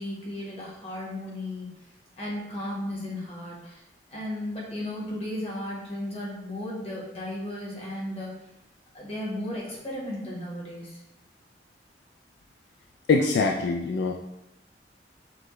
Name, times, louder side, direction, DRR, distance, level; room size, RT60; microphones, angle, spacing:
voice 1, 0.0-1.7 2.2-3.8 4.1-8.3 8.9-11.0, left 1 dB, 35° left, -4 dB, 1.2 m, -35 dB
voice 2, 13.1-14.1, left 4 dB, 75° left, 2 dB, 0.3 m, -23 dB
6.0 x 2.2 x 3.1 m, 0.86 s
head